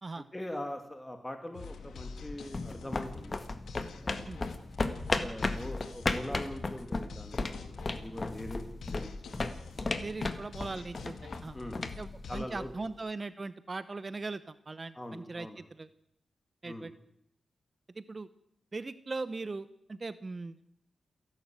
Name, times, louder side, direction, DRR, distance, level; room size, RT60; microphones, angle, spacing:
voice 1, 0.1-3.4 4.0-4.4 5.2-9.6 11.5-11.9 12.3-12.7 14.9-15.6 16.6-16.9, left 1 dB, 10° left, 5 dB, 2.6 m, -42 dB
sound 1, 1.5-12.4, left 4 dB, 85° left, 2.2 m, -46 dB
sound 2, 2.1-12.9, left 3 dB, 30° left, 1.7 m, -36 dB
voice 2, 10.0-11.6 12.0-15.9 16.6-16.9 17.9-18.3 18.7-20.6, right 3 dB, 30° right, 13 dB, 0.9 m, -39 dB
28.5 x 12.0 x 9.1 m, 0.73 s
wide cardioid pair, 120°, 0 cm